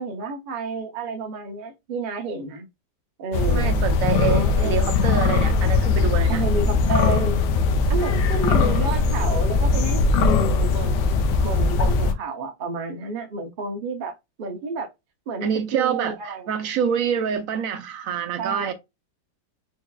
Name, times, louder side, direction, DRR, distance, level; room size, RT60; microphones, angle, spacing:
voice 1, 0.0-2.7 3.2-3.7 4.2-5.0 6.3-7.5 7.9-14.9 15.3-16.5 18.4-18.7, right 4 dB, 85° right, 0.4 m, -30 dB
sound 1, 3.3-12.1, left 4 dB, 80° left, 1.2 m, -20 dB
voice 2, 3.5-6.4 15.4-18.7, right 8 dB, 70° right, 0.9 m, -26 dB
4.4 x 2.8 x 2.2 m
omnidirectional pair, 1.8 m